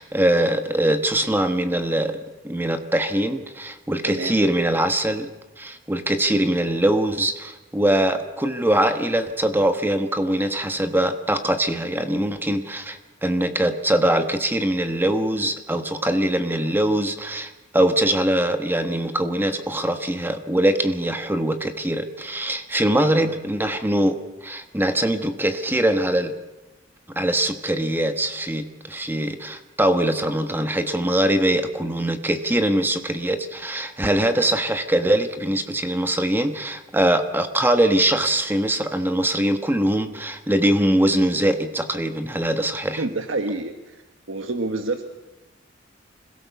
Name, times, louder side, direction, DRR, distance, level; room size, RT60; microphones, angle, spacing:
voice 1, 0.0-2.2 2.4-5.3 5.6-26.3 27.1-43.0, right 1 dB, 10° right, 7 dB, 1.2 m, -22 dB
voice 2, 4.0-4.3 43.0-43.7 44.3-45.0, right 2 dB, 85° right, 5 dB, 1.5 m, -27 dB
26.5 x 17.0 x 7.0 m, 1.1 s
head